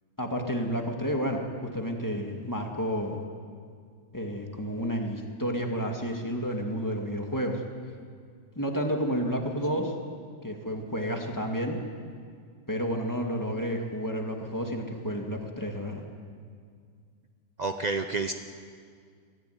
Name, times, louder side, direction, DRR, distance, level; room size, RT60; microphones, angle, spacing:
voice 1, 0.2-1.4 1.7-3.2 4.1-7.6 8.6-9.9 10.4-11.8 12.7-16.0, equal, 10° left, 1 dB, 2.0 m, -30 dB
voice 2, 17.6-18.3, right 3 dB, 60° right, 6 dB, 0.4 m, -29 dB
24.0 x 14.5 x 9.3 m, 2.1 s
omnidirectional pair, 2.0 m